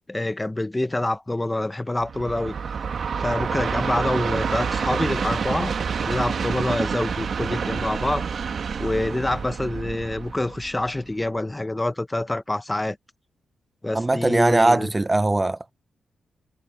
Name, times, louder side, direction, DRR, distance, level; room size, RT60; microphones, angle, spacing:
voice 1, 0.1-2.6 3.2-5.7 6.0-8.3 8.8-13.0 13.8-14.9, left 2 dB, 15° left, 0.9 m, -26 dB
Train, 2.0-11.2, right 6 dB, 55° right, 1.5 m, -28 dB
voice 2, 13.9-15.7, right 2 dB, 20° right, 0.5 m, -20 dB
cardioid pair, 100°, 0 cm